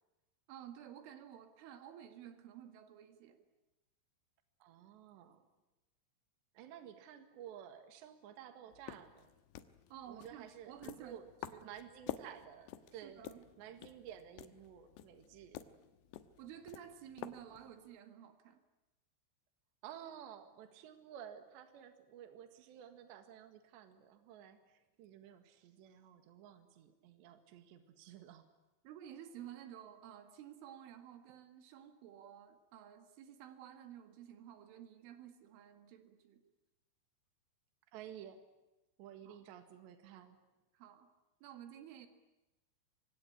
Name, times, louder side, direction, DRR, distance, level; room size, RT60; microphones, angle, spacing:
voice 1, 0.5-3.4 9.9-11.2 11.5-11.7 12.9-13.4 16.4-18.6 28.8-36.4 39.2-39.4 40.7-41.1 41.4-42.1, right 10 dB, 85° right, 8 dB, 4.4 m, -53 dB
voice 2, 4.6-5.4 6.6-9.3 10.1-11.3 11.6-13.2 13.6-15.7 19.8-28.4 37.9-38.4 39.0-40.4, right 10 dB, 70° right, 8 dB, 3.9 m, -53 dB
sound 1, 8.7-17.9, left 12 dB, 75° left, 3.0 m, -51 dB
25.0 x 23.5 x 10.0 m, 1.0 s
omnidirectional pair, 5.5 m